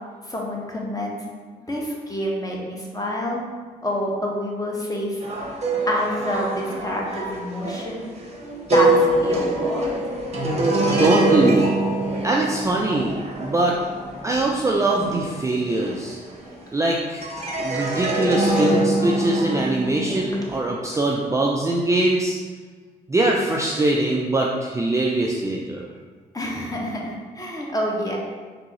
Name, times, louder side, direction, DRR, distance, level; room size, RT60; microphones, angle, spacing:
voice 1, 0.2-1.2 1.7-3.4 3.8-5.2 5.9-8.0 8.7-10.0 26.3-28.2, equal, 15° left, -3 dB, 1.0 m, -27 dB
sound 1, 5.2-16.8 17.2-20.6, right 2 dB, 35° right, 0.8 m, -24 dB
voice 2, 11.0-11.8 12.2-13.8 14.2-16.2 16.7-17.2 17.6-22.4 23.1-25.9, right 2 dB, 15° right, -2 dB, 0.4 m, -22 dB
3.5 x 2.8 x 3.0 m, 1.5 s
hypercardioid pair, 45°, 20 cm